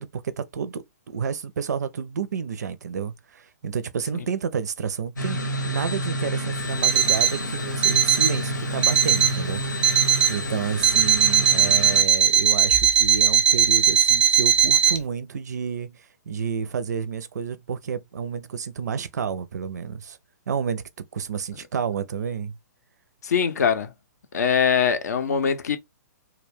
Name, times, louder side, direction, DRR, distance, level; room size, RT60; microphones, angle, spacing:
voice 1, 0.0-20.2 20.5-20.8 21.1-22.5, right 6 dB, 70° right, 0.4 m, -30 dB
sound 1, 5.2-12.0, equal, 90° left, 0.9 m, -29 dB
Alarm, 6.8-7.4 7.8-8.4 8.8-9.4 9.8-10.4 10.8-15.0, right 9 dB, 10° right, 0.4 m, -19 dB
voice 2, 23.2-23.9 24.3-25.8, left 7 dB, 65° left, 0.5 m, -22 dB
2.3 x 2.2 x 3.4 m
figure-of-eight pair, 125°, 10 cm